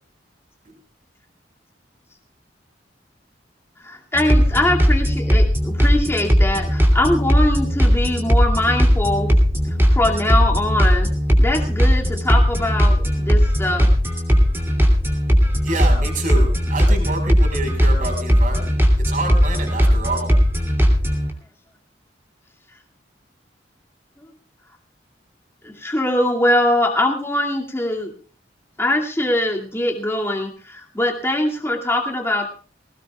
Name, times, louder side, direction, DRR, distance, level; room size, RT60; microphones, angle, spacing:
voice 1, 3.8-9.3 9.9-11.1 11.4-13.9 25.6-28.1 28.8-32.5, left 1 dB, 15° left, 0 dB, 2.3 m, -22 dB
sound 1, 4.1-21.3, equal, 15° right, 2.9 m, -17 dB
voice 2, 15.6-18.8 19.1-20.3, right 2 dB, 45° right, 3 dB, 4.9 m, -27 dB
20.5 x 18.5 x 2.4 m, 0.40 s
head